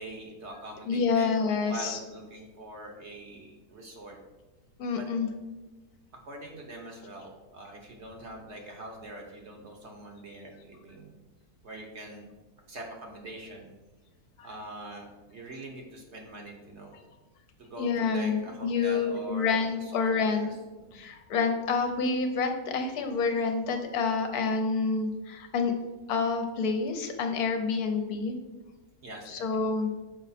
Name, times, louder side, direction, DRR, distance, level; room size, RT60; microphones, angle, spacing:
voice 1, 0.0-4.2 4.9-5.1 6.3-11.2 11.6-12.3 12.7-13.7 14.4-17.0 17.6-21.0 29.0-29.7, right 1 dB, 50° right, 2 dB, 1.1 m, -44 dB
voice 2, 0.9-2.0 4.8-5.3 14.4-14.5 17.8-20.5 20.9-25.7 26.1-28.4 29.3-29.9, left 4 dB, 70° left, 6 dB, 1.2 m, -28 dB
6.4 x 4.9 x 4.1 m, 1.1 s
omnidirectional pair, 1.7 m